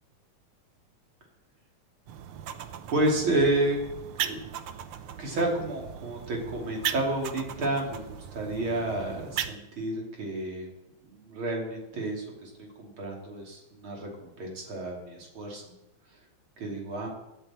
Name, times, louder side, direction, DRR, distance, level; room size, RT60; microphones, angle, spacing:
sound 1, 2.1-9.6, right 9 dB, 75° right, 1.2 m, -37 dB
voice 1, 2.9-3.8 4.2-4.4 5.2-10.7 11.1-15.6 16.6-17.1, right 2 dB, 45° right, -1 dB, 3.5 m, -30 dB
18.0 x 11.0 x 4.3 m, 0.92 s
omnidirectional pair, 3.4 m